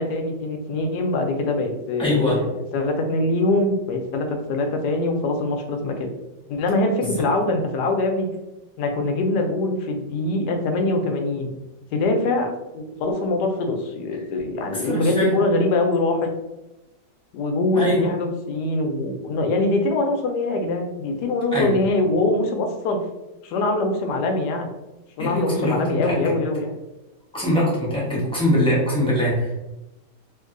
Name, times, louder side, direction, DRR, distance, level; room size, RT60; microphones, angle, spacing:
voice 1, 0.0-6.1 6.5-8.3 8.8-11.5 11.9-16.3 17.3-23.0 23.4-24.7 25.2-26.7, left 2 dB, 75° left, 4 dB, 1.1 m, -23 dB
voice 2, 2.0-2.4 7.0-7.1 14.7-15.4 17.7-18.1 21.5-21.8 25.2-26.3 27.3-29.5, left 1 dB, 5° left, -7 dB, 0.4 m, -22 dB
3.1 x 2.7 x 2.5 m, 0.96 s
omnidirectional pair, 1.9 m